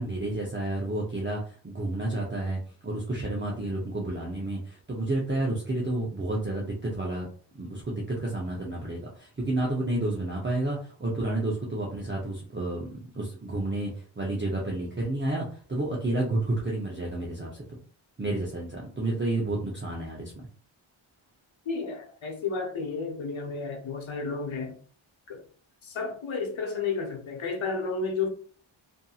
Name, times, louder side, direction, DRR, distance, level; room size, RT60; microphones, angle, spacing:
voice 1, 0.0-7.3 7.5-12.9 13.1-13.9 14.2-17.6 18.2-20.3, right 2 dB, 25° right, 0.6 m, -30 dB
voice 2, 21.7-24.8 25.3-25.4 25.8-28.3, left 4 dB, 70° left, 0.8 m, -32 dB
2.6 x 2.6 x 2.3 m
wide cardioid pair, 95°, 50 cm